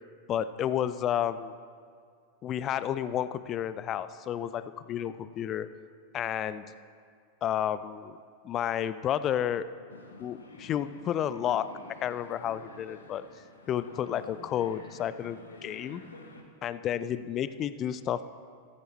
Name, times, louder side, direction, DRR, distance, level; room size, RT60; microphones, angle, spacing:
voice 1, 0.3-1.5 2.4-5.7 6.1-6.6 7.4-8.2 8.4-9.7 10.2-11.7 12.0-13.3 13.7-16.0 16.6-18.2, left 10 dB, 30° left, 14 dB, 0.4 m, -31 dB
sound 1, 9.9-16.4, left 3 dB, 70° left, 1.2 m, -49 dB
14.5 x 14.0 x 3.1 m, 2.2 s
figure-of-eight pair, 90°, 0 cm